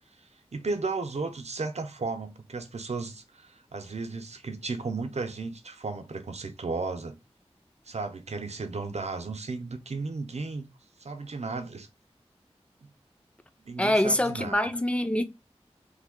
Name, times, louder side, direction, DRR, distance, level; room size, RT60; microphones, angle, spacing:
voice 1, 0.5-7.2 7.9-10.7 11.0-11.9 12.8-12.9 13.6-14.7, right 3 dB, 80° right, 0.6 m, -34 dB
voice 2, 13.8-15.2, left 1 dB, 10° left, 0.5 m, -25 dB
3.3 x 2.2 x 3.5 m
wide cardioid pair, 50°, 11 cm